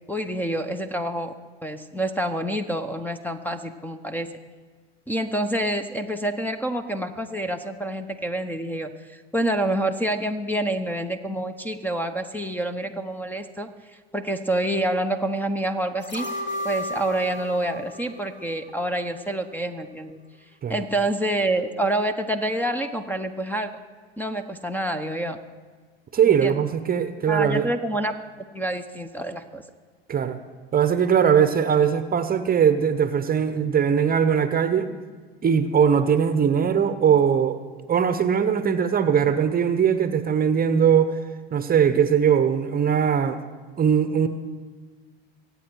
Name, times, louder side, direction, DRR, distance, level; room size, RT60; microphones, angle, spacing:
voice 1, 0.1-1.3 1.6-4.3 5.1-13.7 14.1-16.3 16.6-20.2 20.7-23.7 24.2-25.4 26.3-26.6 27.3-28.2 28.5-29.6, right 1 dB, 5° left, 9 dB, 0.9 m, -27 dB
sound 1, 16.0-19.1 19.5-19.6, left 1 dB, 35° left, 2.7 m, -34 dB
voice 2, 26.1-27.7 30.1-30.4 30.7-34.9 35.4-37.6 37.9-41.2 41.5-43.4 43.8-44.3, right 7 dB, 30° right, 10 dB, 0.9 m, -20 dB
23.5 x 8.7 x 4.6 m, 1.5 s
hypercardioid pair, 80°, 31 cm